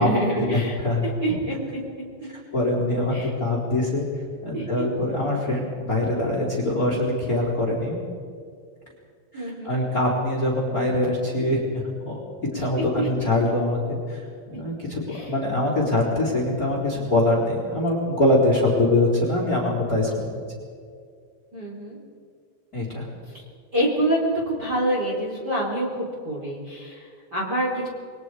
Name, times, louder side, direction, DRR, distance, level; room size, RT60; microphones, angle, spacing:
voice 1, 0.0-1.8 2.2-2.3 3.1-3.3 4.5-4.8 9.3-9.8 12.5-13.1 14.5-14.6 15.1-15.3 21.5-22.0 23.3-23.4 23.7-27.9, right 1 dB, 25° right, -3 dB, 4.1 m, -27 dB
voice 2, 2.5-4.0 4.4-8.0 9.3-12.2 12.5-20.3 22.7-23.1, left 1 dB, 20° left, -2 dB, 3.9 m, -23 dB
28.5 x 23.5 x 4.9 m, 2.2 s
omnidirectional pair, 5.2 m